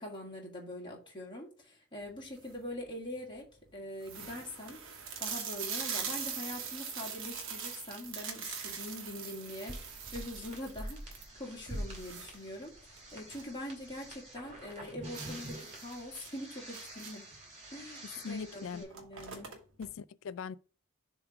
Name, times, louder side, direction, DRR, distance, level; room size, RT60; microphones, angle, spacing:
voice 1, 0.0-3.5 3.7-4.8 5.2-12.7 13.1-17.3 17.7-19.5, left 1 dB, 20° left, 1.8 m, -43 dB
sound 1, 2.2-2.7 3.3-3.4 3.6-3.7 4.0-13.6 13.9-14.0 14.4-14.5 15.1-17.4 18.3-18.5 18.7-19.9, right 6 dB, 60° right, 1.1 m, -42 dB
sound 2, 9.5-18.8, right 1 dB, 30° right, 2.4 m, -46 dB
voice 2, 18.2-18.8 19.8-20.6, left 6 dB, 60° left, 0.3 m, -41 dB
7.0 x 3.1 x 4.9 m
head